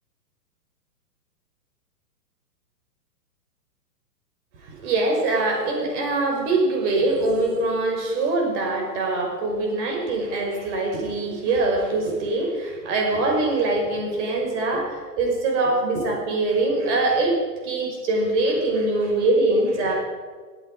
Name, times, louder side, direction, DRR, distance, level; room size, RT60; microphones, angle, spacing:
voice 1, 4.7-17.4 17.6-19.9, right 2 dB, 45° right, 0 dB, 5.7 m, -23 dB
18.5 x 15.0 x 5.0 m, 1.5 s
hypercardioid pair, 140°, 49 cm